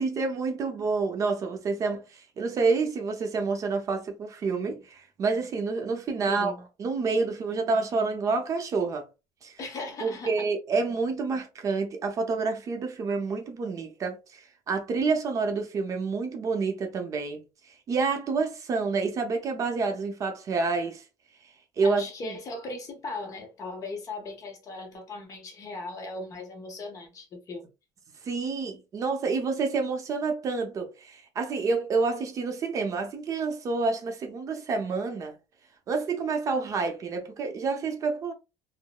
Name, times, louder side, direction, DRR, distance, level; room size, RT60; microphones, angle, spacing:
voice 1, 0.0-6.5 6.8-9.1 9.4-9.6 10.0-14.4 14.7-17.4 17.9-21.0 21.8-22.4 28.2-35.3 35.9-38.3, right 4 dB, 40° right, 0.6 m, -28 dB
voice 2, 6.2-6.6 9.6-10.5 21.8-27.7, left 3 dB, 40° left, 0.9 m, -38 dB
3.6 x 2.0 x 2.3 m
cardioid pair, 140°, 9 cm